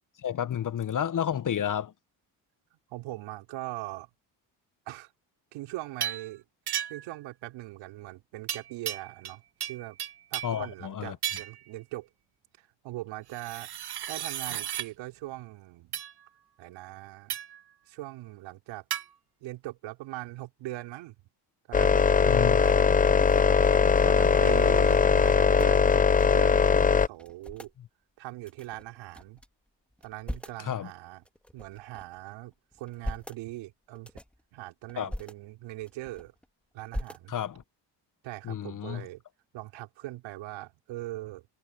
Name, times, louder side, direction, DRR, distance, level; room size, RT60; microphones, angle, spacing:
voice 1, 0.2-1.9 10.4-11.2 22.3-22.6 22.9-23.0 30.6-30.9 35.0-35.1 37.3-37.6 38.4-39.1, left 9 dB, 45° left, 1.2 m, -31 dB
voice 2, 2.9-4.1 4.9-5.1 5.5-6.4 6.9-9.4 9.7-10.0 10.3-12.1 12.6-13.7 14.1-16.0 16.6-17.4 17.9-18.9 19.4-21.2 21.7-23.0 24.0-27.7 28.2-29.4 30.0-31.2 31.5-34.1 34.5-36.3 36.7-37.3 38.2-39.2 39.5-41.5, right 17 dB, 80° right, 5.1 m, -41 dB
sound 1, 6.0-6.3 6.7-7.2 8.5-9.4 9.6-10.6 11.2-11.6 13.3-14.9 15.9-16.1 17.3-17.6 18.9-19.1, right 10 dB, 60° right, 1.7 m, -34 dB
sound 2, 21.7-27.1, left 5 dB, 20° left, 0.6 m, -21 dB
sound 3, 23.0-26.5 26.8-26.9 27.1-27.7 28.4-29.5 29.9-30.7 31.2-32.2 32.7-33.4 33.9-34.4 34.9-35.3 35.8-36.5 36.9-37.6, equal, 5° left, 2.0 m, -41 dB
supercardioid pair, 75°, 45 cm